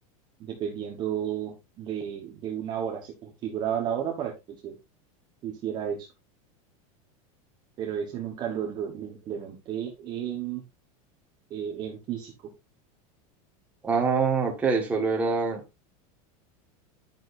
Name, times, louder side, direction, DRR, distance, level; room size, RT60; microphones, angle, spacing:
voice 1, 0.4-4.3 4.6-4.7 5.4-6.1 7.8-10.6 11.5-12.3, right 9 dB, 25° right, 0 dB, 1.1 m, -32 dB
voice 2, 13.8-15.6, right 4 dB, 10° right, 0 dB, 1.5 m, -24 dB
10.5 x 6.2 x 2.6 m, 0.24 s
supercardioid pair, 180°, 18 cm